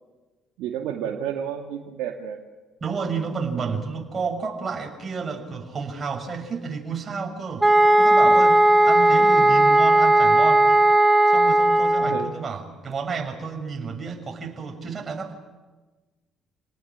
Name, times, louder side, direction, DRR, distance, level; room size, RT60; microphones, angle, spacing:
voice 1, 0.6-2.4 3.5-3.8 12.0-12.4, right 9 dB, 80° right, 1 dB, 2.1 m, -31 dB
voice 2, 2.8-7.7 8.0-10.7 11.3-15.4, right 5 dB, 35° right, 3 dB, 6.5 m, -31 dB
sound 1, 7.6-12.3, right 1 dB, 15° right, 2.0 m, -16 dB
29.0 x 18.5 x 8.7 m, 1.2 s
supercardioid pair, 65°, 0 cm